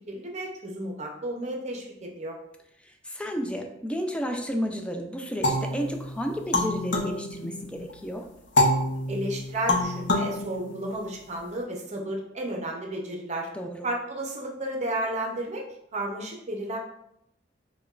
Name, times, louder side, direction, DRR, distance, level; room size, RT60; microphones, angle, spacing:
voice 1, 0.0-2.4 9.1-13.5 13.8-15.6 15.9-16.8, right 1 dB, 40° right, 1 dB, 0.6 m, -32 dB
voice 2, 2.8-8.3 13.5-13.9, equal, 5° left, 4 dB, 0.3 m, -32 dB
sound 1, 5.4-7.9 8.6-11.4, left 1 dB, 80° left, 0.6 m, -27 dB
4.9 x 2.2 x 2.4 m, 0.77 s
head